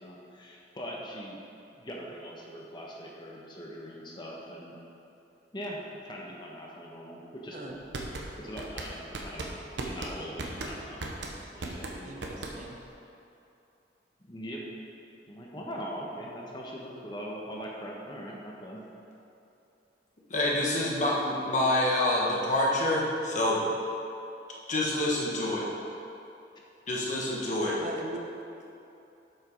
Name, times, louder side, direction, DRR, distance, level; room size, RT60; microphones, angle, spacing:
voice 1, 0.0-1.4 1.8-4.8 5.5-7.8 8.4-9.5 9.8-12.4 14.2-14.6 15.3-18.8 25.4-25.7, equal, 25° left, -2 dB, 1.1 m, -41 dB
sound 1, 7.7-12.9, right 2 dB, 90° right, 0.9 m, -37 dB
voice 2, 12.0-12.8 27.8-28.3, right 2 dB, 45° right, 1 dB, 0.8 m, -40 dB
voice 3, 20.3-23.7 24.7-25.7 26.9-27.8, left 1 dB, 45° left, -3 dB, 1.3 m, -27 dB
7.7 x 5.4 x 5.2 m, 2.8 s
head